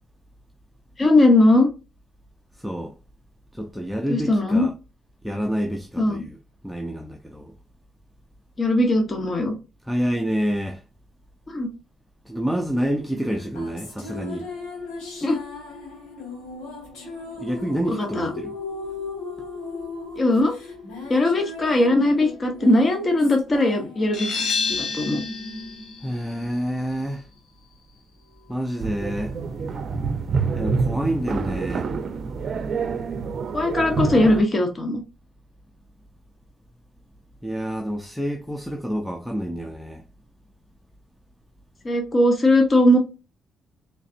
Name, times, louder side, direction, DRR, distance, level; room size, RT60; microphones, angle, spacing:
voice 1, 1.0-1.7 4.1-4.7 6.0-6.2 8.6-9.5 11.5-11.7 15.2-15.4 18.0-18.3 20.2-20.6 21.1-24.3 24.8-25.2 33.5-35.0 41.8-43.0, left 1 dB, 30° left, 1.0 m, -19 dB
voice 2, 2.5-3.0 3.5-4.7 5.2-6.4 6.6-7.5 9.8-10.8 12.3-14.5 17.4-18.6 26.0-27.3 28.5-29.4 30.5-32.0 37.4-40.1, equal, ahead, 0.6 m, -28 dB
sound 1, 13.3-26.9, left 3 dB, 90° left, 2.0 m, -37 dB
sound 2, 24.1-29.5, left 4 dB, 70° left, 1.1 m, -32 dB
sound 3, 28.8-34.4, right 5 dB, 55° right, 0.5 m, -27 dB
3.9 x 3.3 x 2.5 m
cardioid pair, 90°, 0 cm